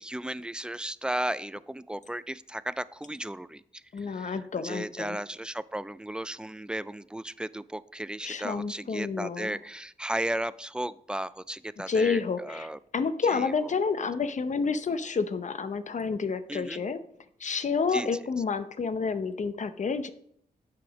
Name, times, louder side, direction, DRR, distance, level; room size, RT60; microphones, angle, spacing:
voice 1, 0.0-12.8 13.3-13.5 16.5-16.8 17.9-18.1, right 1 dB, 5° right, 17 dB, 0.3 m, -35 dB
voice 2, 3.9-5.2 8.2-9.6 11.9-17.0 17.4-20.1, left 5 dB, 50° left, 12 dB, 0.7 m, -29 dB
7.5 x 6.1 x 5.0 m, 0.69 s
cardioid pair, 70°, 16 cm